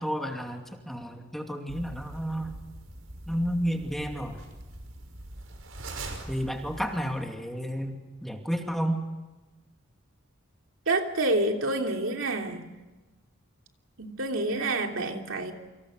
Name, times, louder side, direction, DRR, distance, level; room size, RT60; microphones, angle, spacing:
voice 1, 0.0-2.6 3.3-4.4 6.3-9.0, equal, ahead, 3 dB, 2.6 m, -31 dB
sound 1, 1.7-7.3, right 2 dB, 85° right, 5.5 m, -42 dB
voice 2, 10.9-12.7 14.0-15.5, right 2 dB, 65° right, 3 dB, 3.1 m, -28 dB
28.5 x 25.5 x 6.6 m, 1.2 s
head